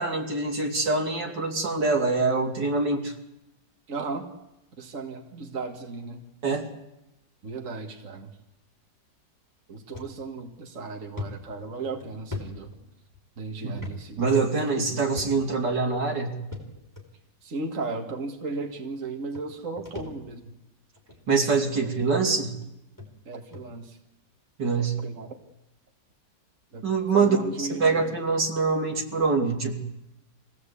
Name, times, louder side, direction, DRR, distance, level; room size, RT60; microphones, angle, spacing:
voice 1, 0.0-3.1 6.4-6.7 14.2-16.4 21.3-22.5 24.6-25.0 26.8-29.8, right 4 dB, 70° right, 2 dB, 3.4 m, -24 dB
voice 2, 3.9-4.3 4.8-6.2 7.4-8.3 9.7-12.7 13.4-14.9 17.4-20.5 21.8-21.9 23.3-24.0 24.8-25.4 26.7-26.8 27.1-28.1, right 3 dB, 45° right, 3 dB, 2.2 m, -36 dB
sound 1, 9.9-10.1 10.6-10.7 11.2-13.2 13.7-14.0 14.3-14.4 15.1-15.6 16.5-17.0 17.9-18.0 19.0-19.1 19.3-20.5 21.0-21.2 22.0-22.1 22.6-22.7 23.0-23.1 23.5-23.7, left 3 dB, 10° left, 4.2 m, -39 dB
25.0 x 17.5 x 8.4 m, 0.91 s
omnidirectional pair, 1.9 m